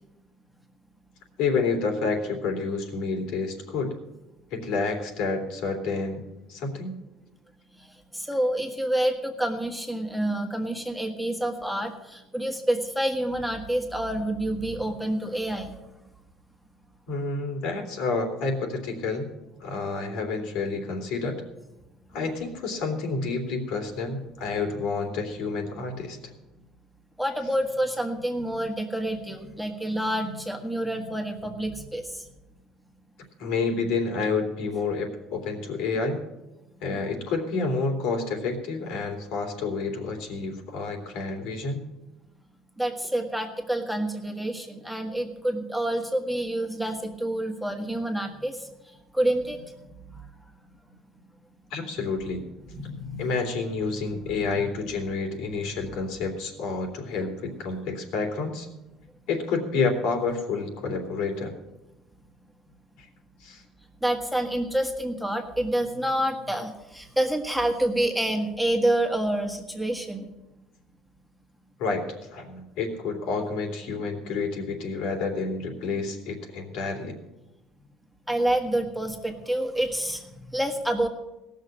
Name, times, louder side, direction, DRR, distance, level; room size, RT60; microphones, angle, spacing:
voice 1, 1.4-3.9 4.5-6.2 6.5-6.9 17.1-19.3 19.6-21.4 22.1-26.2 33.4-36.2 36.8-41.8 51.7-52.4 53.2-58.7 59.3-61.5 63.0-63.1 63.4-63.6 71.8-72.0 72.3-77.2, left 4 dB, 75° left, 3 dB, 3.0 m, -29 dB
voice 2, 8.1-15.7 27.2-32.3 42.8-48.7 49.1-49.6 52.7-53.3 54.1-54.2 64.0-70.2 78.3-81.1, right 1 dB, ahead, 3 dB, 1.6 m, -28 dB
18.0 x 6.6 x 7.5 m, 0.99 s
cardioid pair, 145°, 0 cm